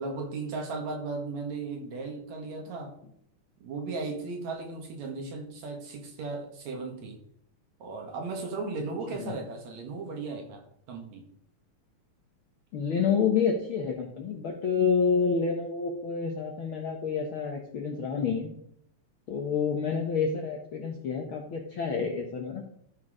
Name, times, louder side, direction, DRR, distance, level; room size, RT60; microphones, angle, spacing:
voice 1, 0.0-2.9 3.6-7.2 7.8-10.6 10.9-11.3, right 3 dB, 65° right, 2 dB, 2.8 m, -36 dB
voice 2, 12.7-18.5 19.3-22.6, left 6 dB, 65° left, 1 dB, 1.4 m, -28 dB
13.5 x 4.6 x 4.9 m, 0.69 s
omnidirectional pair, 3.6 m